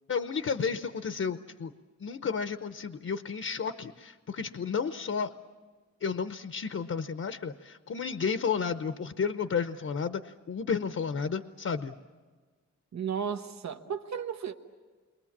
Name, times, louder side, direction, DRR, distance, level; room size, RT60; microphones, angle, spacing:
voice 1, 0.1-1.7 2.0-5.3 6.0-11.9, left 6 dB, 50° left, 9 dB, 0.8 m, -32 dB
voice 2, 12.9-14.5, right 7 dB, 65° right, 7 dB, 1.1 m, -34 dB
29.5 x 23.5 x 7.3 m, 1.4 s
wide cardioid pair, 150°, 30 cm